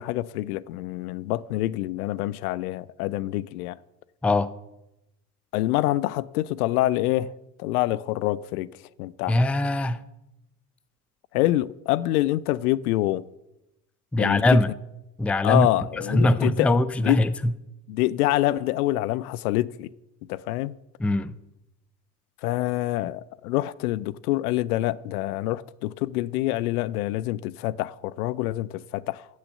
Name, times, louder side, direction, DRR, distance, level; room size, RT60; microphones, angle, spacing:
voice 1, 0.0-3.8 5.5-8.7 9.0-9.4 11.3-13.2 14.2-14.6 15.4-16.8 17.0-17.2 17.9-19.9 20.3-20.8 22.4-29.3, left 16 dB, 70° left, 0.6 m, -26 dB
voice 2, 9.3-10.0 14.1-14.7 15.2-15.7 16.1-17.5 21.0-21.3, left 1 dB, 5° left, 0.4 m, -21 dB
15.0 x 6.4 x 6.7 m
hypercardioid pair, 65°, 47 cm